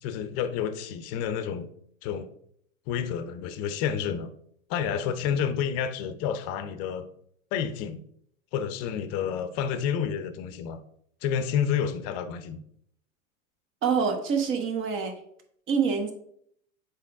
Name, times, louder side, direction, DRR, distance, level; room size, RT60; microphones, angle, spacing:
voice 1, 0.0-1.7 2.0-2.3 2.9-4.3 4.7-7.1 7.5-8.0 8.5-10.8 11.2-12.6, left 8 dB, 40° left, 0.7 m, -29 dB
voice 2, 13.8-15.1 15.7-16.1, right 6 dB, 30° right, 1.3 m, -26 dB
7.4 x 5.0 x 3.5 m
supercardioid pair, 135°, 40 cm